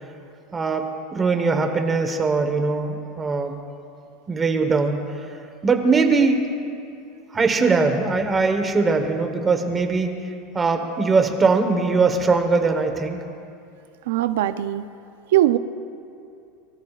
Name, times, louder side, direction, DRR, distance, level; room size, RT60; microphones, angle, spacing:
voice 1, 0.5-3.5 4.3-5.0 5.6-6.4 7.3-10.1 10.5-13.2, right 4 dB, 15° right, 5 dB, 1.2 m, -21 dB
voice 2, 14.1-14.9 15.3-15.6, right 14 dB, 85° right, 11 dB, 0.6 m, -20 dB
24.5 x 23.5 x 2.5 m, 2.5 s
supercardioid pair, 165°, 0 cm